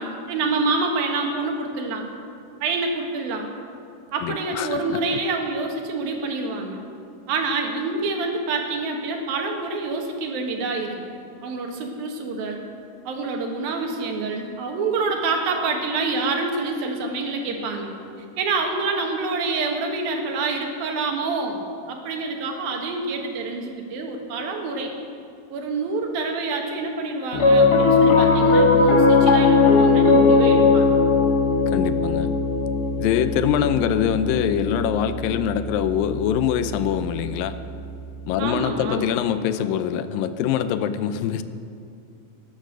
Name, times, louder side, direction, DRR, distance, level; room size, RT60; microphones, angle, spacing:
voice 1, 0.0-2.1 2.6-3.5 4.1-6.8 7.3-12.6 13.1-17.9 18.4-21.6 21.9-24.9 25.5-30.9 38.4-39.1, right 3 dB, 85° right, 2 dB, 3.3 m, -27 dB
voice 2, 4.2-5.2 31.7-32.3 33.0-37.6 38.3-41.4, left 9 dB, 85° left, 11 dB, 2.3 m, -24 dB
Piano, 27.3-37.8, left 3 dB, 70° left, 0.9 m, -19 dB
18.0 x 9.8 x 6.6 m, 2.5 s
omnidirectional pair, 4.1 m